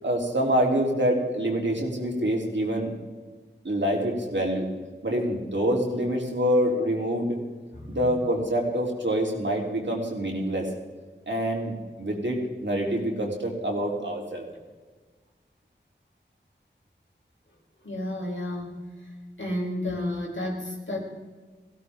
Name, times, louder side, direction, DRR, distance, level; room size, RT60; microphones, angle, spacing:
voice 1, 0.0-2.9 3.6-4.7 5.0-7.4 7.9-10.7 11.3-14.5, equal, 70° right, -1 dB, 3.4 m, -26 dB
voice 2, 17.8-18.8 19.4-21.0, left 1 dB, 80° left, -2 dB, 4.1 m, -31 dB
18.5 x 16.0 x 3.7 m, 1.4 s
wide cardioid pair, 50°, 19 cm